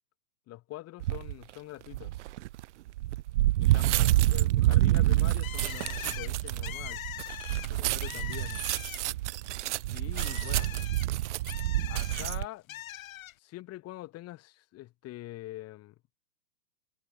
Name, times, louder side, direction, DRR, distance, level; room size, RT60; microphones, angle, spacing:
voice 1, 0.5-2.1 3.6-7.0 7.7-8.7 9.8-10.7 11.9-12.8 13.4-16.0, left 16 dB, 30° left, 7.2 m, -44 dB
sound 1, 1.0-1.3 1.9-12.4, right 16 dB, 45° right, 0.6 m, -28 dB
Bird, 5.4-9.3 9.6-12.2 12.7-13.3, left 15 dB, 55° left, 0.7 m, -42 dB
hypercardioid pair, 125°, 49 cm